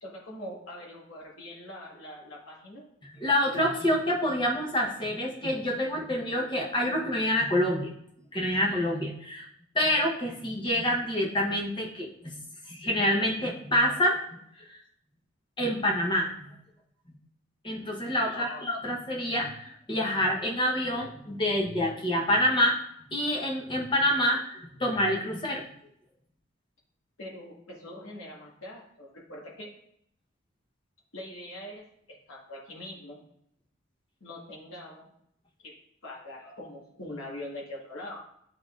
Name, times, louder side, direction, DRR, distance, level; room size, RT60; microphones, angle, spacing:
voice 1, 0.0-2.8 18.3-18.6 27.2-29.7 31.1-31.8 32.3-33.2 34.2-35.1 35.6-35.7 36.0-38.2, left 1 dB, 70° left, -4 dB, 1.6 m, -42 dB
voice 2, 3.2-7.9 8.3-9.5 9.7-12.4 12.7-14.2 14.6-14.8 15.6-16.5 17.6-22.8 23.1-25.6, left 1 dB, 25° left, -1 dB, 1.0 m, -27 dB
10.0 x 3.8 x 2.5 m, 0.71 s
head